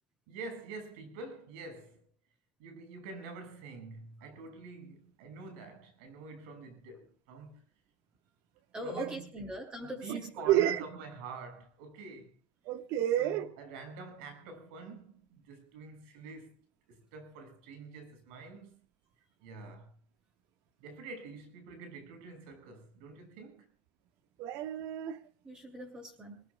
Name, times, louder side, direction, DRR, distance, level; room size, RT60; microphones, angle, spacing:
voice 1, 0.3-2.0 2.6-7.6 8.8-9.5 9.8-12.4 13.2-16.6 16.9-18.8 19.4-19.9 20.8-23.7, right 4 dB, 85° right, 7.0 m, -46 dB
voice 2, 8.7-10.1 10.4-10.5 25.4-26.4, equal, 20° right, 6.9 m, -41 dB
voice 3, 10.5-10.8 12.6-13.5 24.4-25.2, right 12 dB, 65° right, 1.7 m, -29 dB
27.0 x 19.5 x 2.4 m
cardioid pair, 135°, 5 cm